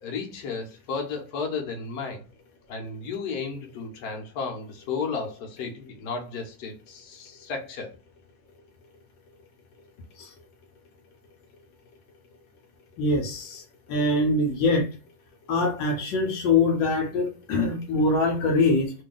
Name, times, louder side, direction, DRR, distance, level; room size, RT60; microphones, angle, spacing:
voice 1, 0.0-2.2 2.7-7.9, left 5 dB, 60° left, 1.4 m, -33 dB
voice 2, 13.0-13.6 13.9-14.9 15.5-18.9, left 2 dB, 80° left, 1.4 m, -23 dB
3.3 x 2.2 x 3.8 m
omnidirectional pair, 2.0 m